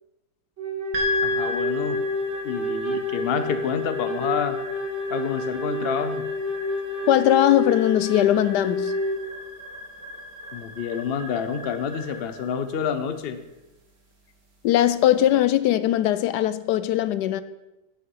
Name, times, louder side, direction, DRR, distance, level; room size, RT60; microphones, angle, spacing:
Wind instrument woodwind instrument, 0.6-9.2, left 1 dB, 45° right, 2.0 m, -29 dB
sound 1, 0.9-15.3, left 3 dB, 85° right, 2.5 m, -36 dB
voice 1, 1.2-2.0 2.4-4.6 5.1-6.2 10.5-13.4, left 7 dB, 45° left, 0.8 m, -28 dB
voice 2, 7.1-9.0 14.6-17.4, left 12 dB, 80° left, 1.1 m, -20 dB
9.7 x 8.7 x 5.5 m
omnidirectional pair, 1.8 m